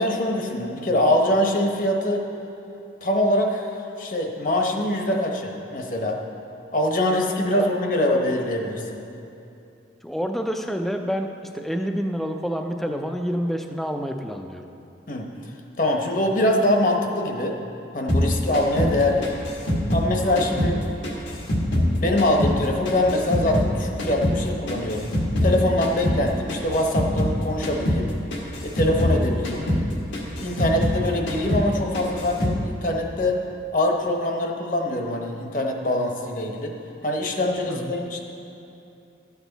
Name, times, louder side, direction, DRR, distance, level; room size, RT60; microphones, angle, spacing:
voice 1, 0.0-2.3 3.0-6.2 6.7-9.0 15.1-15.3 15.8-17.6 17.9-19.4 19.9-20.8 22.0-25.1 25.4-28.1 28.6-29.7 30.4-33.4 33.7-36.8 37.0-38.2, left 1 dB, 45° left, 2 dB, 1.0 m, -23 dB
voice 2, 10.0-14.6 20.4-20.6 37.7-37.9, equal, ahead, 4 dB, 0.4 m, -28 dB
sound 1, 18.1-20.8 21.0-23.7 24.0-27.4 27.6-28.0 28.3-31.0 31.3-31.7 31.9-32.6, left 1 dB, 85° left, 1.6 m, -24 dB
13.0 x 8.2 x 4.0 m, 2.7 s
head